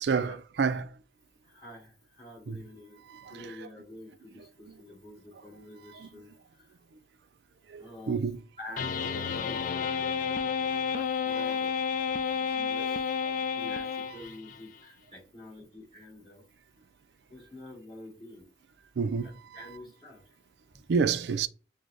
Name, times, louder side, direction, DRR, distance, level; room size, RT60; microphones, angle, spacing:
voice 1, 0.0-0.9 2.5-2.6 3.1-3.5 6.0-6.1 7.7-8.4 11.3-11.5 12.6-13.0 19.0-19.3 19.6-19.7 20.9-21.5, right 5 dB, 65° right, 0.4 m, -29 dB
voice 2, 1.5-3.0 3.3-6.3 6.6-6.7 7.8-8.2 8.6-9.6 10.9-11.7 12.6-13.1 13.5-16.4 17.3-18.5 19.2-20.2, left 1 dB, 25° left, 2.1 m, -47 dB
sound 1, 8.8-14.6, left 6 dB, 45° left, 0.3 m, -31 dB
6.2 x 2.2 x 2.5 m
head